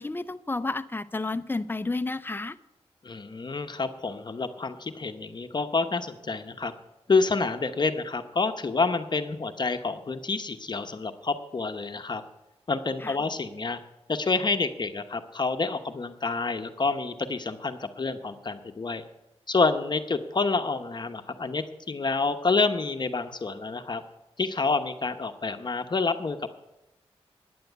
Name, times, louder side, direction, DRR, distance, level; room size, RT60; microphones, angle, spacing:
voice 1, 0.0-2.6 13.0-13.2, left 3 dB, 20° left, 13 dB, 0.6 m, -31 dB
voice 2, 3.0-6.7 7.1-12.2 12.7-13.8 14.1-19.0 19.5-24.0 24.4-26.5, left 4 dB, 40° left, 7 dB, 0.9 m, -28 dB
10.5 x 9.4 x 8.0 m, 0.97 s
wide cardioid pair, 90°, 11 cm